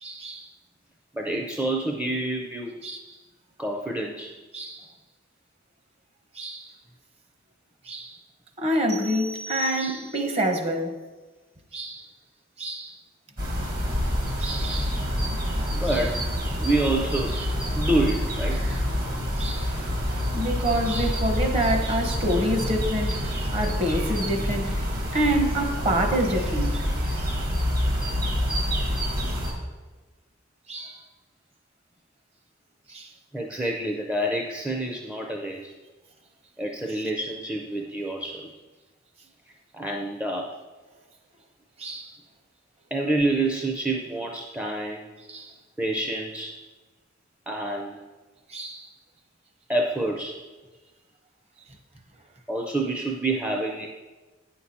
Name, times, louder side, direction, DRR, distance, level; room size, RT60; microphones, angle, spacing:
voice 1, 0.0-0.5 2.8-3.0 4.5-4.9 6.3-6.7 7.9-8.2 8.6-11.0 11.7-12.0 12.6-12.9 14.4-15.0 15.9-16.0 19.4-19.7 20.3-24.7 25.1-26.8 27.1-27.3 29.3-29.4 30.7-31.0 32.9-33.1 41.8-42.1 45.3-45.5 48.5-48.9, right 1 dB, 35° right, 1.0 m, -27 dB
voice 2, 1.1-2.7 3.6-4.4 15.7-16.3 16.6-17.4 17.7-18.6 33.3-35.7 36.6-38.5 39.7-40.5 42.9-45.0 45.8-46.6 47.5-48.0 49.7-50.4 52.5-53.9, right 2 dB, 5° right, 0.5 m, -27 dB
sound 1, 8.9-10.4, right 4 dB, 70° right, 1.9 m, -38 dB
sound 2, 13.4-29.5, equal, 50° right, 1.7 m, -27 dB
9.3 x 5.9 x 4.2 m
head